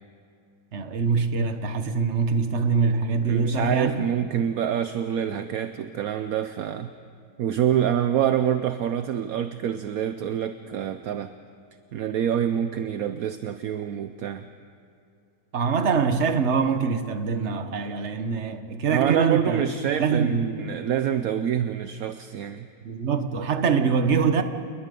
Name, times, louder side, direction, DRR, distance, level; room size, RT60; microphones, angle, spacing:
voice 1, 0.7-4.1 15.5-19.6 20.0-20.5 22.8-24.4, right 5 dB, 45° right, 1.4 m, -24 dB
voice 2, 3.2-6.9 7.4-11.3 11.9-14.5 18.9-22.7, right 9 dB, 65° right, 1.1 m, -26 dB
28.5 x 21.0 x 5.3 m
omnidirectional pair, 1.8 m